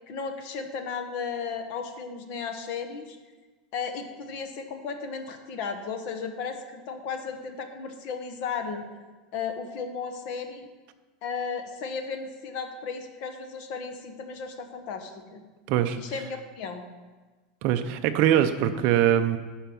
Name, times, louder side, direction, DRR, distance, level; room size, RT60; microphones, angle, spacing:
voice 1, 0.1-3.2 3.7-8.8 9.3-10.7 11.2-15.4 16.0-16.8, left 5 dB, 40° left, 7 dB, 1.1 m, -35 dB
voice 2, 17.6-19.4, right 10 dB, 40° right, 8 dB, 0.6 m, -22 dB
11.5 x 4.5 x 7.1 m, 1.3 s
supercardioid pair, 170°, 4 cm